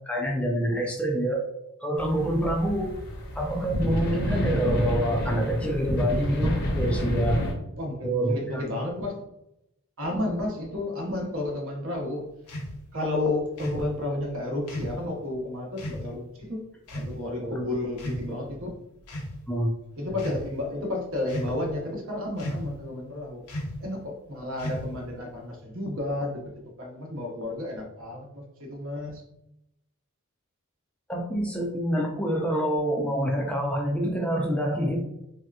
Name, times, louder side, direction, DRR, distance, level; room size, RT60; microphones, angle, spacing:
voice 1, 0.0-1.4 1.8-2.9 3.3-7.5 8.0-8.8 17.4-17.7 19.5-19.7 31.1-35.0, right 1 dB, 5° left, 0 dB, 0.4 m, -26 dB
sound 1, 2.0-7.5, equal, 50° left, 0.7 m, -29 dB
voice 2, 7.8-9.2 10.0-12.3 12.9-16.6 16.9-18.7 20.0-23.4 23.8-26.4 26.8-29.2, left 2 dB, 65° right, 0 dB, 0.9 m, -32 dB
sound 2, 12.5-12.7 13.6-13.9 14.7-15.0 15.8-16.0 16.9-17.2 17.9-18.5 19.0-19.4 20.1-20.4 21.3-21.7 22.4-22.8 23.5-23.8 24.6-25.1, equal, 85° left, 0.7 m, -34 dB
3.3 x 2.8 x 2.3 m, 0.83 s
head